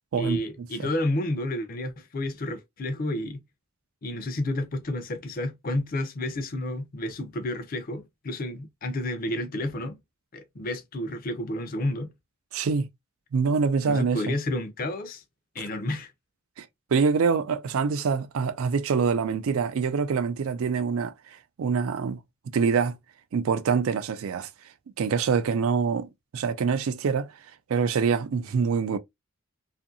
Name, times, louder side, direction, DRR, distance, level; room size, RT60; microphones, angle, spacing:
voice 1, 0.1-3.4 4.0-10.0 10.3-12.1 13.8-15.2 15.5-16.1, left 1 dB, 40° left, 0.5 m, -30 dB
voice 2, 12.5-12.9 13.3-14.3 15.6-15.7 16.6-16.7 16.9-21.1 21.6-22.2 22.5-23.0 23.3-24.5 25.0-27.3 27.7-29.0, right 5 dB, 75° right, 0.4 m, -25 dB
2.6 x 2.5 x 2.5 m
head